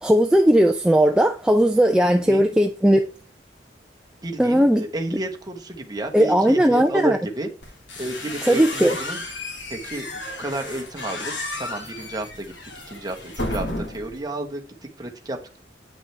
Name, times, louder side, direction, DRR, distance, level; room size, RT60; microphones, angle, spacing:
voice 1, 0.0-3.1 4.4-4.9 6.1-7.2 8.4-9.0, equal, 5° right, 0.4 m, -17 dB
voice 2, 4.2-7.5 8.0-9.2 9.7-10.1 10.4-12.5 12.9-14.6 15.0-15.6, right 2 dB, 20° right, 1.2 m, -31 dB
sound 1, 7.6-14.2, left 2 dB, 85° left, 2.2 m, -33 dB
9.0 x 6.1 x 3.3 m
head